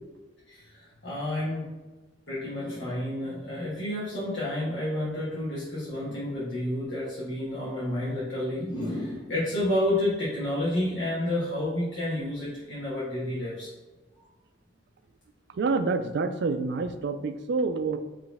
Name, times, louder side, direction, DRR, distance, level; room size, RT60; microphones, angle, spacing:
voice 1, 1.0-1.6 2.3-13.7, left 1 dB, 65° left, -9 dB, 1.2 m, -30 dB
voice 2, 15.5-18.0, right 4 dB, 60° right, 9 dB, 0.3 m, -27 dB
4.2 x 3.1 x 3.4 m, 1.2 s
head